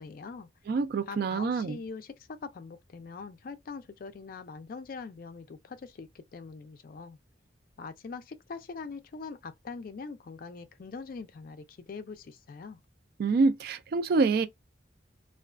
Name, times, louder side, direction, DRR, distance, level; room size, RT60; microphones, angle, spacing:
voice 1, 0.0-0.5 1.1-7.2 7.8-12.8, left 4 dB, 50° left, 0.3 m, -43 dB
voice 2, 0.7-1.8 13.2-14.5, right 4 dB, 55° right, 0.3 m, -26 dB
2.4 x 2.2 x 2.3 m
head